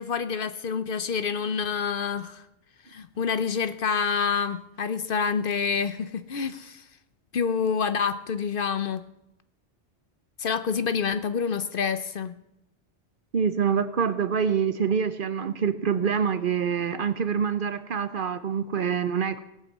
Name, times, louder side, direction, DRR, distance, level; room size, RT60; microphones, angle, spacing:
voice 1, 0.0-2.5 2.9-6.8 7.3-9.0 10.4-12.4, left 6 dB, 55° left, 12 dB, 0.8 m, -27 dB
voice 2, 13.3-19.4, right 7 dB, 55° right, 13 dB, 0.9 m, -26 dB
18.0 x 8.2 x 7.3 m, 0.84 s
omnidirectional pair, 1.2 m